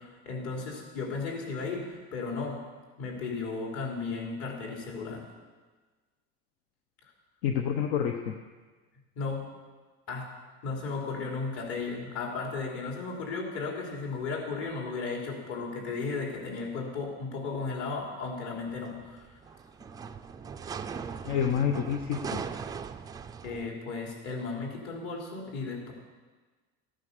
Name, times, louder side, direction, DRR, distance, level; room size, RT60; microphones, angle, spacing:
voice 1, 0.0-2.6 3.0-5.2 9.2-9.4 10.1-10.3 10.6-19.4 23.4-25.9, left 4 dB, 55° left, -1 dB, 3.5 m, -35 dB
voice 2, 7.4-8.3 21.2-22.4, left 8 dB, 80° left, 4 dB, 1.1 m, -28 dB
sound 1, 18.7-23.7, right 6 dB, 15° right, 0.3 m, -40 dB
14.5 x 9.1 x 6.8 m, 1.3 s
cardioid pair, 165°, 29 cm